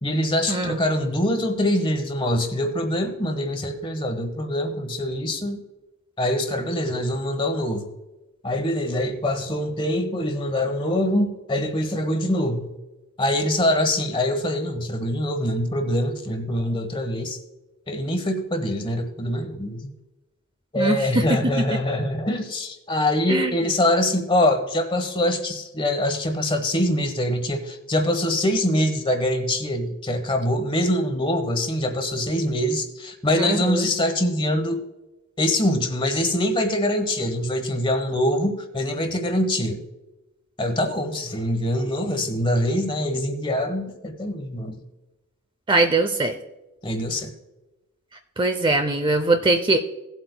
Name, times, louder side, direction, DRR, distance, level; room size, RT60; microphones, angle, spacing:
voice 1, 0.0-5.6 6.2-7.9 8.4-12.7 13.2-17.4 17.9-19.9 20.7-34.8 35.4-39.8 40.6-44.8 46.8-47.3, left 1 dB, 25° left, 6 dB, 1.1 m, -24 dB
voice 2, 33.4-33.9 45.7-46.4 48.4-49.8, right 2 dB, 20° right, 7 dB, 0.5 m, -21 dB
18.0 x 8.0 x 2.2 m, 1.0 s
head